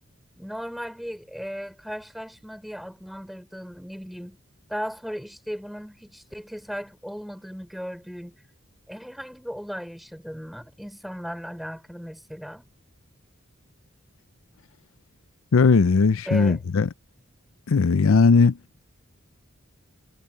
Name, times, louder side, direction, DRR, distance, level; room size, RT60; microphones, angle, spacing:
voice 1, 0.4-4.4 4.7-8.3 8.9-12.6 16.3-16.6, equal, ahead, 5.1 m, -36 dB
voice 2, 15.5-16.9 17.7-18.6, left 4 dB, 75° left, 0.5 m, -18 dB
head